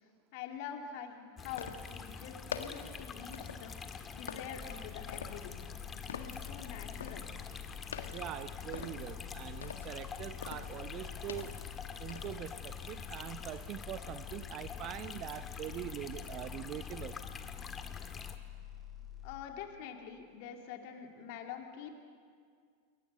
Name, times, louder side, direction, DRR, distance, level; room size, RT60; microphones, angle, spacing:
voice 1, 0.3-5.5 5.9-7.3 19.2-22.0, left 8 dB, 50° left, 3 dB, 2.7 m, -46 dB
sound 1, 1.4-18.4, left 5 dB, 20° left, 1.7 m, -46 dB
sound 2, 1.5-12.3, left 7 dB, 70° left, 1.6 m, -47 dB
sound 3, 4.6-19.3, left 11 dB, 5° right, 6.6 m, -48 dB
voice 2, 8.1-11.5 12.0-17.2, right 12 dB, 40° right, 15 dB, 0.7 m, -43 dB
28.5 x 22.5 x 6.8 m, 2.1 s
figure-of-eight pair, 90°, 0 cm